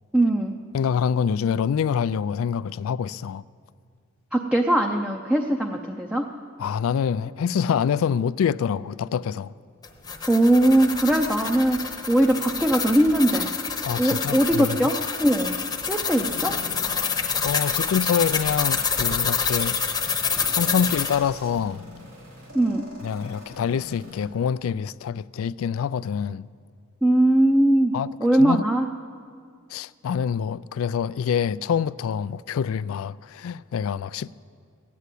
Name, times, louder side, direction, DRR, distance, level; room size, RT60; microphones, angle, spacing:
voice 1, 0.1-0.6 4.3-6.3 10.3-13.5 14.0-15.6 15.9-16.6 22.5-22.9 27.0-27.9 28.2-28.9, right 1 dB, 5° right, 0.5 m, -20 dB
voice 2, 0.7-3.4 6.6-9.5 13.8-14.8 17.4-19.8 20.5-21.8 23.0-26.5 27.9-28.6 29.7-34.3, left 7 dB, 75° left, 0.3 m, -26 dB
sound 1, 9.8-21.2, left 6 dB, 20° left, 0.9 m, -27 dB
sound 2, 16.2-24.2, left 2 dB, 75° right, 3.9 m, -44 dB
15.5 x 9.3 x 8.3 m
head